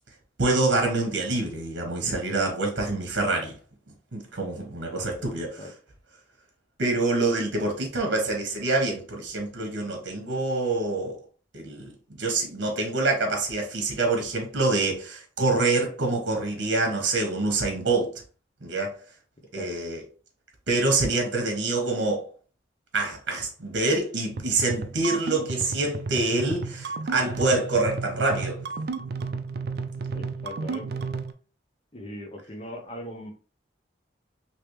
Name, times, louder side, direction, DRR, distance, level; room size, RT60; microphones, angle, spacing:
voice 1, 0.4-3.5 4.1-5.5 6.8-11.2 11.5-11.9 12.2-18.1 18.6-18.9 19.5-20.0 20.7-22.3 22.9-28.6, right 2 dB, 75° right, 1.1 m, -26 dB
sound 1, 24.3-31.3, right 4 dB, 55° right, 0.3 m, -33 dB
voice 2, 30.1-31.0 31.9-33.3, left 1 dB, 30° left, 0.7 m, -39 dB
3.4 x 2.8 x 3.0 m
head